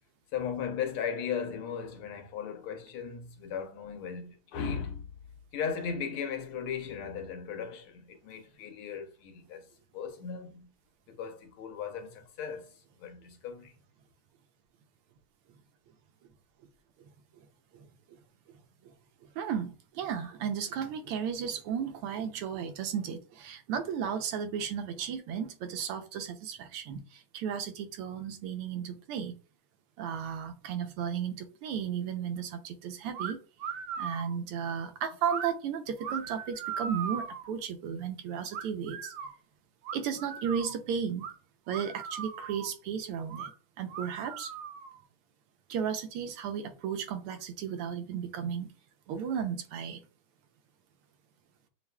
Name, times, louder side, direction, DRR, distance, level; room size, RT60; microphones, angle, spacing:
voice 1, 0.3-5.1 5.5-9.6 9.9-10.7 11.1-12.7 13.0-13.7, left 7 dB, 80° left, 1.7 m, -37 dB
voice 2, 19.3-29.4 30.0-33.4 34.0-39.1 39.9-41.3 41.7-43.5 43.8-44.5 45.7-48.7 49.1-50.0, right 7 dB, 90° right, 1.6 m, -34 dB
sound 1, 33.1-33.3 33.6-34.4 35.2-35.5 36.0-37.5 38.5-39.3 39.8-40.8 41.2-41.3 41.7-42.7 43.3-43.5 43.9-45.0, right 7 dB, 75° right, 1.2 m, -38 dB
6.8 x 2.4 x 2.2 m
omnidirectional pair, 2.4 m